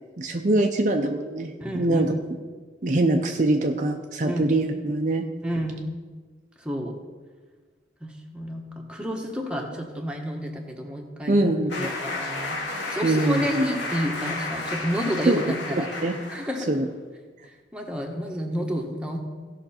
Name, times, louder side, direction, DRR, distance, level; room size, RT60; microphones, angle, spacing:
voice 1, 0.2-2.1 2.8-5.3 11.3-11.9 13.0-13.7 15.3-15.4 16.0-16.2 16.7-16.9, right 2 dB, 45° right, 4 dB, 0.6 m, -23 dB
voice 2, 1.6-2.0 4.2-4.6 5.4-5.9 6.6-7.0 8.0-12.6 12.9-15.9 16.3-16.7 17.7-19.2, equal, 5° right, 0 dB, 1.2 m, -30 dB
sound 1, 11.7-16.7, left 2 dB, 85° left, 2.6 m, -32 dB
16.5 x 5.8 x 4.3 m, 1.4 s
head